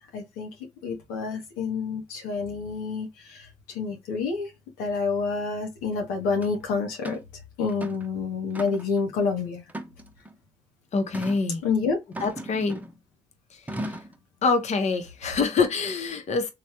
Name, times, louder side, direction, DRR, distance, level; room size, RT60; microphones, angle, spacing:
voice 1, 0.1-0.5 0.8-4.5 4.8-7.2 7.6-9.6 11.6-12.0, left 4 dB, 90° left, 0.6 m, -28 dB
sound 1, 6.4-6.5 7.0-7.3 7.7-8.1 8.5-9.0 9.7-10.3 11.1-11.4 12.1-13.0 13.7-14.2, right 1 dB, 10° right, 0.8 m, -37 dB
voice 2, 10.9-11.6 12.2-12.8 13.7-14.0 14.4-16.5, left 4 dB, 55° left, 0.8 m, -25 dB
3.3 x 2.2 x 2.8 m
supercardioid pair, 50°, 14 cm